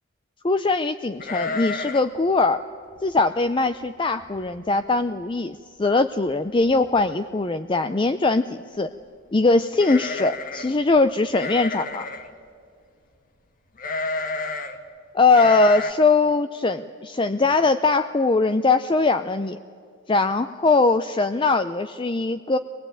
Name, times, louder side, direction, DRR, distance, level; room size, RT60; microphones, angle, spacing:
voice 1, 0.4-2.6 3.0-8.9 9.3-12.1 15.1-19.6 20.1-22.6, left 3 dB, 25° left, 10 dB, 0.5 m, -21 dB
sound 1, 1.2-2.2 2.4-2.5 3.0-3.3 3.8-3.9 4.2-4.7 5.0-5.1 6.3-6.4 6.7-7.1 9.7-10.8 11.3-12.3 13.8-14.8 15.3-15.9, left 3 dB, 45° left, 1.5 m, -30 dB
23.5 x 20.0 x 9.2 m, 2.3 s
head